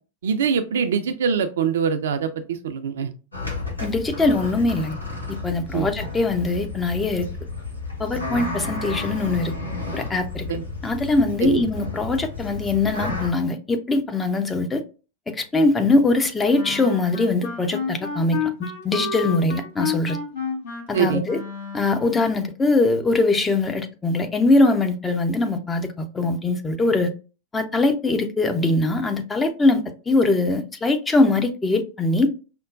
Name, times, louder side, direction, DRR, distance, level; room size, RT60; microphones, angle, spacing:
voice 1, 0.2-3.1 5.7-5.9 10.5-10.6 11.4-11.6 20.9-21.2, right 7 dB, 60° right, 0.4 m, -23 dB
sound 1, 3.3-13.3, left 3 dB, 80° left, 1.0 m, -32 dB
voice 2, 3.8-5.0 5.3-7.3 8.0-9.5 9.9-10.5 10.8-14.8 15.3-20.2 20.9-21.4 21.7-27.1 27.5-29.8 30.1-32.3, left 2 dB, 15° left, 0.5 m, -22 dB
Wind instrument woodwind instrument, 16.5-22.3, left 5 dB, 55° left, 1.0 m, -31 dB
5.1 x 2.1 x 2.4 m
figure-of-eight pair, 90°, 0 cm